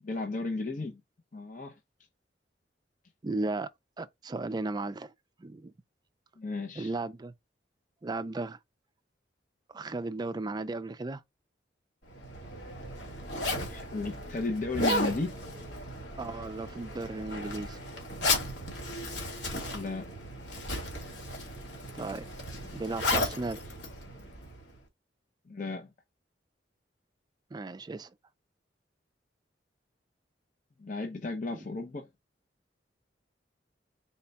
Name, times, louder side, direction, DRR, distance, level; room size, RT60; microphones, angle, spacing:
voice 1, 0.0-1.0 1.3-1.8 6.4-6.9 13.7-15.4 19.7-20.1 25.5-25.9 30.8-32.1, left 3 dB, 45° left, 0.6 m, -34 dB
voice 2, 3.2-3.7 4.0-5.1 5.4-5.7 6.8-7.3 8.0-8.6 9.7-11.2 16.2-17.8 21.9-22.2 22.5-23.6 27.5-28.1 31.5-31.6, right 2 dB, 25° right, 0.3 m, -35 dB
Zipper (clothing), 12.1-24.7, left 1 dB, 70° left, 1.8 m, -35 dB
4.2 x 2.2 x 3.9 m
head